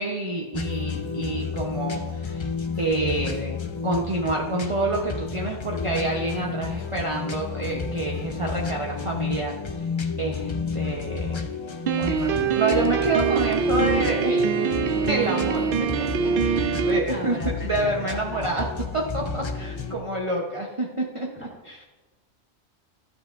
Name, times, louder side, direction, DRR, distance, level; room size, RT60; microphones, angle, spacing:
voice 1, 0.0-2.5 2.8-9.9 10.2-11.4 12.0-15.9 16.2-21.3 21.7-21.8, right 2 dB, 30° right, -2 dB, 0.8 m, -28 dB
sound 1, 0.5-19.9, left 5 dB, 35° left, 0.5 m, -31 dB
Piano, 11.9-17.0, right 6 dB, 60° right, 0.7 m, -24 dB
voice 2, 16.6-18.5 19.6-20.1 21.3-21.6, right 1 dB, 10° left, -3 dB, 1.8 m, -40 dB
12.5 x 7.2 x 2.5 m, 1.3 s
omnidirectional pair, 1.2 m